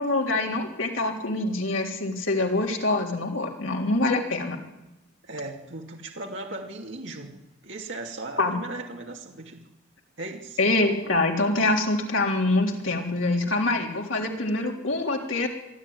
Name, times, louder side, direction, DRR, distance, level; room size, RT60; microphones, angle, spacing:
voice 1, 0.0-4.6 8.4-8.6 10.6-15.5, left 2 dB, 75° left, 0 dB, 3.6 m, -25 dB
voice 2, 5.2-7.3 7.6-9.7 10.2-10.6, right 2 dB, 65° right, 1 dB, 2.7 m, -37 dB
24.0 x 12.5 x 9.6 m, 0.97 s
head